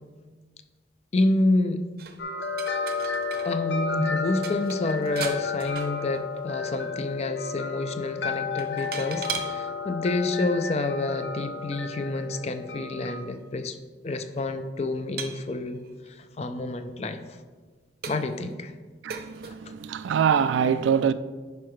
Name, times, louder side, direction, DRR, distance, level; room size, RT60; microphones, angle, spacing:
voice 1, 1.1-1.9 3.4-13.8 14.0-15.8 16.1-17.2 18.1-18.7 19.4-19.5, left 2 dB, 35° left, 0.4 m, -28 dB
sound 1, 2.0-3.6 3.8-3.9 4.2-6.4 6.7-7.0 8.6-9.6 10.4-10.5 13.0-13.1 13.3-13.4 14.2-14.4 15.2-16.1 16.7-16.8 17.4-17.5 18.0-18.5 19.1-19.6, right 6 dB, 55° right, 0.6 m, -38 dB
sound 2, 2.2-13.2, left 5 dB, 75° left, 0.7 m, -32 dB
voice 2, 19.0-21.1, right 7 dB, 90° right, 0.3 m, -24 dB
10.5 x 4.6 x 3.1 m
head